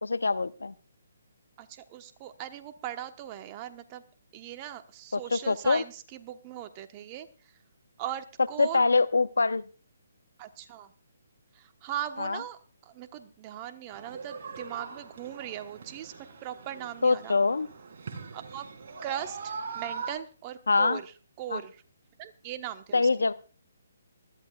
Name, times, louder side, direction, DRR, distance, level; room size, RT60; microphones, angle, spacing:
voice 1, 0.0-0.7 5.1-5.8 8.6-9.6 12.2-12.4 17.0-17.7 20.7-21.0 21.5-21.6 22.9-23.3, left 3 dB, 85° left, 15 dB, 0.8 m, -24 dB
voice 2, 1.6-4.0 4.3-7.5 8.0-8.8 10.4-10.9 11.5-16.1 16.4-17.4 18.3-18.7 19.0-21.1 21.4-21.8 22.2-23.1, right 11 dB, 30° right, 8 dB, 1.1 m, -39 dB
sound 1, 13.9-20.1, right 5 dB, 50° right, 3.6 m, -41 dB
20.5 x 14.0 x 2.4 m, 0.36 s
hypercardioid pair, 145°, 0 cm